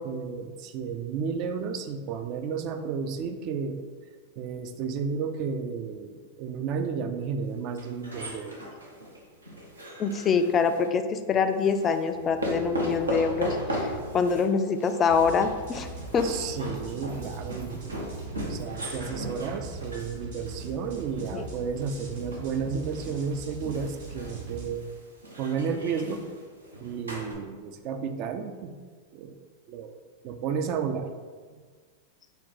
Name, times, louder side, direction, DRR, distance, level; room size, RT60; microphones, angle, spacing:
voice 1, 0.0-3.9 4.4-8.6 16.2-18.1 18.4-24.9 25.4-26.3 26.8-28.7 29.1-29.4 29.7-30.0 30.2-31.1, right 6 dB, 45° right, 7 dB, 0.4 m, -32 dB
sound 1, 7.7-10.9 11.6-27.3, equal, 90° right, 0.7 m, -37 dB
voice 2, 10.0-15.9 16.1-16.3 21.3-21.4, left 5 dB, 30° left, 8 dB, 0.3 m, -25 dB
sound 2, 15.1-24.7, right 2 dB, 65° right, 1.1 m, -41 dB
4.0 x 2.2 x 4.0 m, 1.5 s
hypercardioid pair, 95°, 0 cm